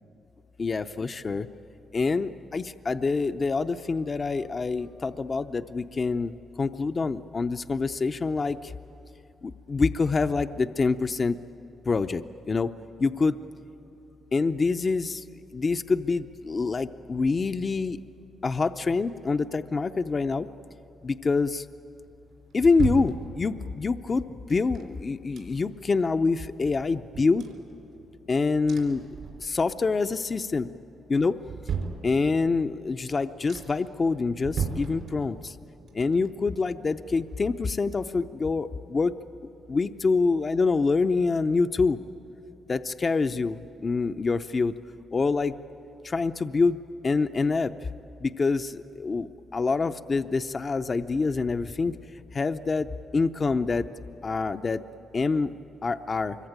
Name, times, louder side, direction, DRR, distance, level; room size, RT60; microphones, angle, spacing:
voice 1, 0.6-1.5 1.9-6.3 6.6-8.7 9.4-11.4 11.8-12.7 13.0-13.4 14.3-15.2 15.5-18.0 18.4-20.5 21.0-21.7 22.5-27.5 28.3-29.0 29.4-30.7 31.1-31.4 32.0-35.6 35.9-39.1 39.7-42.0 42.7-44.7 45.1-45.5 46.0-46.8 47.0-47.7 48.2-51.9 52.3-52.9 53.1-53.9 54.2-54.8 55.1-55.5 55.8-56.4, left 4 dB, 40° left, 9 dB, 0.6 m, -26 dB
sound 1, 22.0-23.8 24.5-25.9 26.3-26.4 26.6-28.2 28.7-29.8 30.2-30.7 31.1-32.6 33.0-33.1 33.5-34.0 34.4-35.6 35.9-37.7 38.0-38.1, right 6 dB, 75° right, 4.3 m, -36 dB
25.0 x 23.0 x 9.0 m, 2.9 s
cardioid pair, 75°, 0 cm